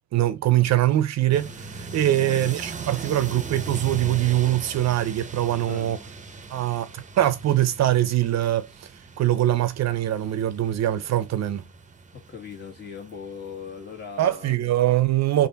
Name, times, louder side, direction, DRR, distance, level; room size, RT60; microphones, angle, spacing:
voice 1, 0.1-6.0 6.5-8.9 9.2-11.6 14.2-15.5, right 13 dB, 60° right, 0.6 m, -23 dB
sound 1, 1.3-14.5, right 3 dB, 25° right, 0.7 m, -40 dB
voice 2, 2.0-3.1 5.7-5.9 12.1-14.6, left 6 dB, 35° left, 1.8 m, -39 dB
3.4 x 2.5 x 3.9 m
cardioid pair, 90°, 30 cm